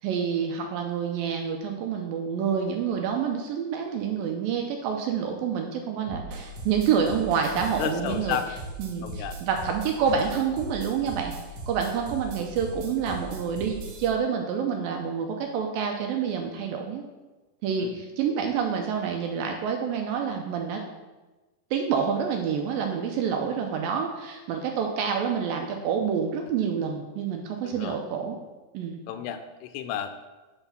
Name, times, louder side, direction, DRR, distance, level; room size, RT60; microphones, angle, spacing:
voice 1, 0.0-8.4 8.8-11.3 11.7-17.0 17.6-20.8 21.7-28.4 28.7-29.0, right 7 dB, 80° right, 3 dB, 2.1 m, -28 dB
sound 1, 6.1-14.1, right 2 dB, 60° right, 2.4 m, -39 dB
voice 2, 7.8-8.5 9.0-9.4 17.8-18.0 27.6-28.0 29.1-30.1, left 10 dB, 90° left, 8 dB, 2.7 m, -32 dB
8.9 x 4.4 x 5.8 m, 1.2 s
omnidirectional pair, 4.7 m